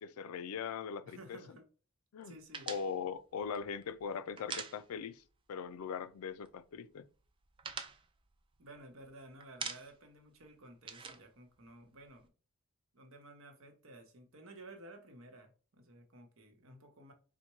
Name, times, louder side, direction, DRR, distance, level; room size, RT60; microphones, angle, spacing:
voice 1, 0.0-1.4 2.1-2.4 2.7-5.2 5.5-7.1, left 6 dB, 90° left, 0.4 m, -40 dB
voice 2, 1.0-1.7 2.2-2.7 8.6-12.3 12.9-17.1, right 1 dB, 70° right, 1.0 m, -54 dB
sound 1, 2.5-5.3 5.6-5.8 6.1-6.7 7.1-9.1 9.4-10.2 10.4-12.2, right 5 dB, 25° right, 0.3 m, -45 dB
4.2 x 2.1 x 4.6 m
head